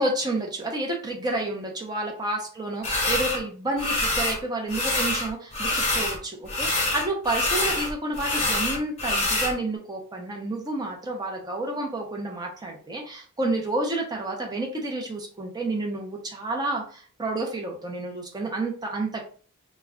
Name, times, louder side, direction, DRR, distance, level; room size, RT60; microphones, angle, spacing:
voice 1, 0.0-19.2, right 2 dB, 20° right, 1 dB, 0.5 m, -30 dB
sound 1, 2.8-3.4 3.8-4.4 4.7-6.2 6.4-9.5, left 2 dB, 30° left, 0.9 m, -25 dB
2.3 x 2.1 x 3.5 m, 0.43 s
head